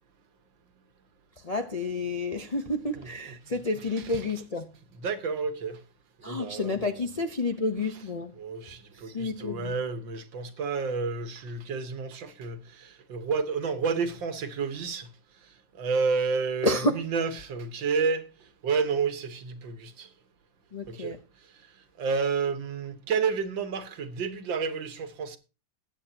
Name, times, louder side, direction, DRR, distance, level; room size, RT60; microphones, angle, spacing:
voice 1, 1.4-4.7 6.2-8.3 9.0-9.7 16.6-17.0 20.7-21.2, left 2 dB, 45° left, 0.5 m, -30 dB
voice 2, 5.0-5.8 6.2-6.8 8.4-15.1 15.8-18.3 18.6-20.1 20.9-21.1 22.0-25.4, right 5 dB, 80° right, 2.0 m, -30 dB
20.5 x 8.5 x 2.9 m
omnidirectional pair, 2.0 m